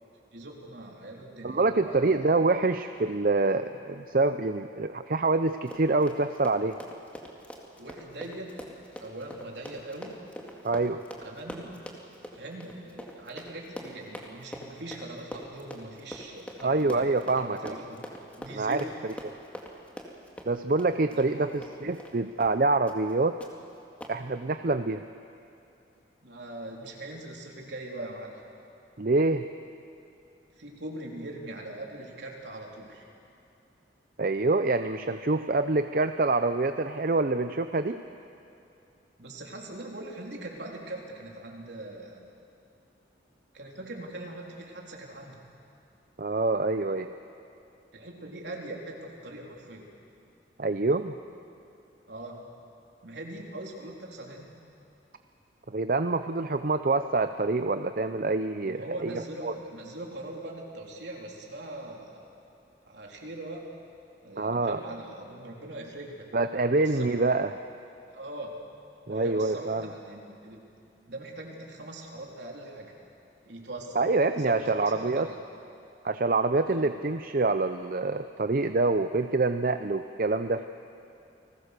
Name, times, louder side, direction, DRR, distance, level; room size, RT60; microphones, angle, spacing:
voice 1, 0.3-2.3 7.8-8.5 9.0-10.2 11.2-11.8 12.3-18.0 18.4-18.9 21.1-21.5 26.2-28.3 30.6-33.1 39.2-42.2 43.5-45.4 47.9-49.9 52.1-52.5 53.0-54.5 58.6-62.2 62.9-63.7 64.2-66.3 66.7-67.1 68.1-68.6 69.1-70.6 71.1-72.9 73.4-74.0 74.4-75.4 76.7-76.9, right 1 dB, 75° right, -1 dB, 3.6 m, -41 dB
voice 2, 1.4-6.8 10.6-11.0 16.6-17.7 18.5-18.8 19.2-19.3 20.5-23.4 24.1-25.0 29.0-29.5 34.2-38.0 46.2-47.1 50.6-51.1 55.7-59.5 64.4-64.8 66.3-67.6 69.1-69.9 74.0-75.3 76.0-80.7, right 3 dB, 50° right, 9 dB, 0.6 m, -26 dB
Run, 5.5-22.1 22.4-22.6 22.9-23.1 23.4-23.5 24.0-24.1, equal, 10° left, 2.1 m, -43 dB
30.0 x 20.0 x 6.8 m, 2.6 s
head